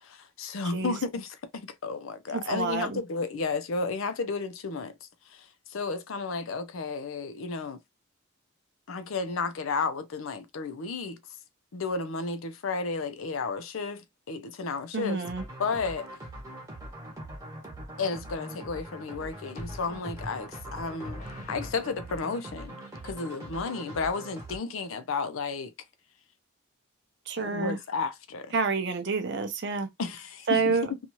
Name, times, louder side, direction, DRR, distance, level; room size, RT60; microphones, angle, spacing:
voice 1, 0.0-7.8 8.9-11.2 11.7-15.2 15.6-16.1 18.0-22.8 23.0-25.7 27.4-28.6 30.0-31.0, left 4 dB, 80° left, 0.5 m, -33 dB
voice 2, 2.3-3.0 14.9-15.4 27.3-27.8 28.5-29.9 30.5-30.9, right 4 dB, 55° right, 0.6 m, -28 dB
sound 1, 15.2-24.6, right 1 dB, 15° right, 0.9 m, -42 dB
sound 2, 16.9-17.4 19.6-22.2, left 1 dB, 35° left, 0.9 m, -44 dB
2.7 x 2.3 x 2.9 m
head